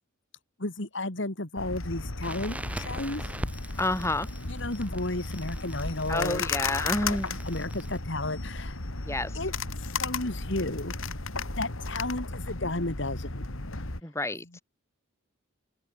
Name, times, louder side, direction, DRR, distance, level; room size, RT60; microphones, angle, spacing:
voice 1, 0.6-3.3 4.5-6.4 7.0-7.2 7.4-8.8 9.3-9.5 9.8-10.9 11.6-13.4 14.5-14.6, left 2 dB, 60° left, 2.3 m, -33 dB
sound 1, 1.6-14.0, left 3 dB, 75° left, 2.8 m, -35 dB
Crackle, 2.2-8.0, right 1 dB, 5° right, 7.8 m, -42 dB
voice 2, 3.8-4.3 6.1-7.3 9.0-9.3 14.0-14.6, left 1 dB, 15° left, 4.9 m, -29 dB
open air
head